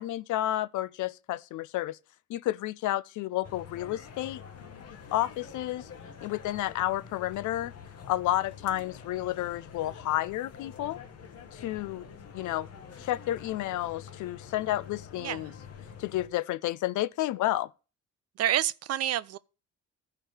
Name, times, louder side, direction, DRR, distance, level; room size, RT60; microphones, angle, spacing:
voice 1, 0.0-2.0 2.3-4.4 5.1-5.9 6.2-7.7 8.1-11.0 11.5-12.1 12.3-12.7 13.0-15.5 16.0-17.7, left 14 dB, 80° left, 0.5 m, -31 dB
sound 1, 3.4-16.3, left 7 dB, 55° left, 1.1 m, -47 dB
voice 2, 18.4-19.4, right 12 dB, 55° right, 0.5 m, -28 dB
14.0 x 4.8 x 4.7 m
cardioid pair, 90°, 30 cm